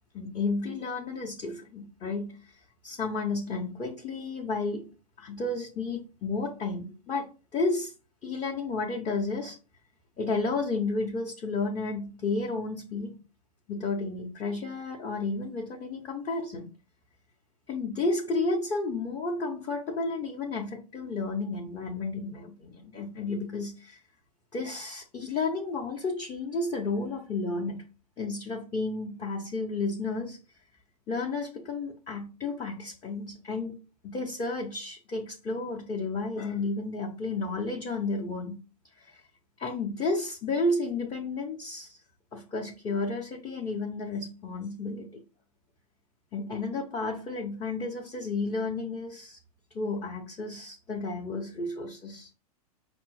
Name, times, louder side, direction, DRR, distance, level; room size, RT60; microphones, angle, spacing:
voice 1, 0.1-2.4 2.8-4.9 5.2-7.9 8.2-9.6 10.2-13.2 13.7-16.7 17.7-24.0 24.5-27.8 28.2-30.4 31.1-33.8 34.0-38.6 39.0-39.2 39.6-42.0 42.3-45.2 46.3-49.4 49.7-52.3, left 3 dB, 20° left, 0.7 m, -32 dB
5.1 x 2.0 x 4.6 m
hypercardioid pair, 130°, 19 cm